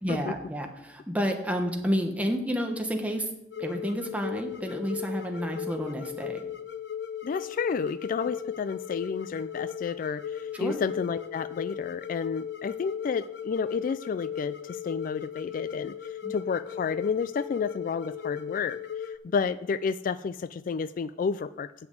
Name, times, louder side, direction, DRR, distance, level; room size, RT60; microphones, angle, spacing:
voice 1, 0.0-3.3 3.6-6.4 10.5-10.8 16.2-16.3, equal, 10° right, 3 dB, 1.3 m, -30 dB
sound 1, 3.5-19.2, left 9 dB, 65° left, 0.7 m, -37 dB
voice 2, 7.2-21.7, left 5 dB, 50° left, 15 dB, 0.3 m, -31 dB
8.0 x 7.0 x 7.9 m, 0.85 s
head